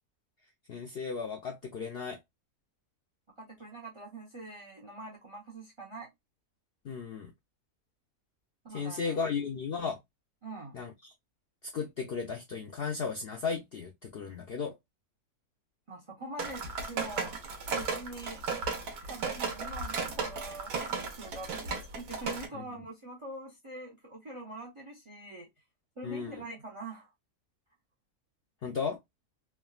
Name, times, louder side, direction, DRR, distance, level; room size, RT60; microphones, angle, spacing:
voice 1, 0.7-2.2 6.8-7.3 8.7-10.0 10.7-10.9 11.7-14.7 22.5-22.6 26.0-26.4 28.6-29.0, left 5 dB, 70° left, 0.5 m, -35 dB
voice 2, 3.4-6.1 8.6-9.2 10.4-10.8 15.9-17.4 17.7-18.4 19.0-25.5 26.0-27.1, right 2 dB, 50° right, 0.3 m, -44 dB
sound 1, 16.4-22.5, right 4 dB, 90° right, 1.4 m, -35 dB
3.5 x 2.1 x 2.3 m
omnidirectional pair, 1.6 m